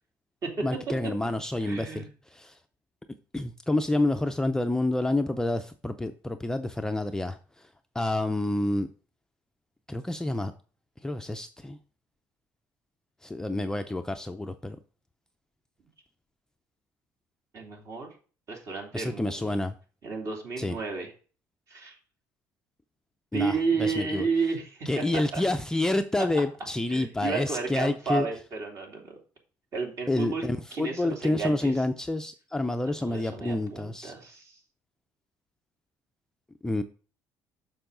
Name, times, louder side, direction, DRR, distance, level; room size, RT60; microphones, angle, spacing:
voice 1, 0.6-2.0 2.3-2.5 3.3-7.4 7.9-8.9 9.9-10.5 11.0-11.8 13.2-14.8 18.9-19.7 20.6-20.8 23.3-24.2 24.9-28.3 30.1-34.1 36.6-36.8, left 2 dB, 10° left, 7 dB, 0.5 m, -28 dB
voice 2, 1.6-2.1 17.5-18.1 18.5-19.6 20.0-21.1 21.7-22.0 23.3-25.4 26.2-26.3 26.9-29.2 29.7-30.4 30.7-31.8 33.0-34.6, right 4 dB, 45° right, 1 dB, 2.8 m, -32 dB
6.8 x 6.2 x 3.8 m, 0.37 s
cardioid pair, 115°, 7 cm